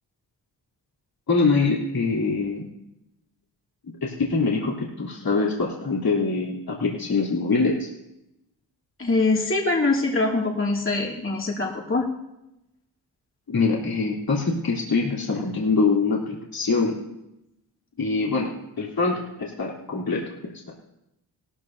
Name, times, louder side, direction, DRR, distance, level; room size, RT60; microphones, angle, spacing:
voice 1, 1.3-2.6 4.0-7.9 13.5-17.0 18.0-20.2, left 4 dB, 55° left, -4 dB, 3.4 m, -24 dB
voice 2, 9.0-12.1, left 3 dB, 30° left, -2 dB, 2.5 m, -23 dB
17.5 x 14.0 x 2.8 m, 0.87 s
cardioid pair, 60°, 43 cm